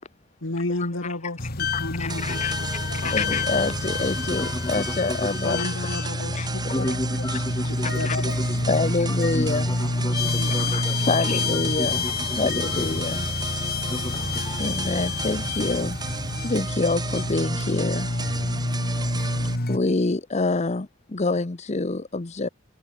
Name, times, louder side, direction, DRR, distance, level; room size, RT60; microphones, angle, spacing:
voice 1, 0.4-3.3 5.4-7.5 7.8-8.7 10.1-10.8 11.1-11.3, left 2 dB, 75° left, 1.9 m, -33 dB
sound 1, 1.4-19.8, left 2 dB, 55° left, 2.8 m, -28 dB
voice 2, 1.7-2.6 3.0-5.9 6.3-6.9 7.8-8.2 8.7-9.7 10.6-13.3 14.6-16.0 16.4-18.1 19.7-22.5, left 3 dB, 35° left, 0.8 m, -27 dB
sound 2, 2.1-19.6, right 3 dB, 20° right, 2.0 m, -34 dB
voice 3, 4.2-5.2 5.5-5.6 6.7-8.5 9.3-11.0 11.5-13.0 13.8-14.6, left 1 dB, 20° left, 2.7 m, -33 dB
head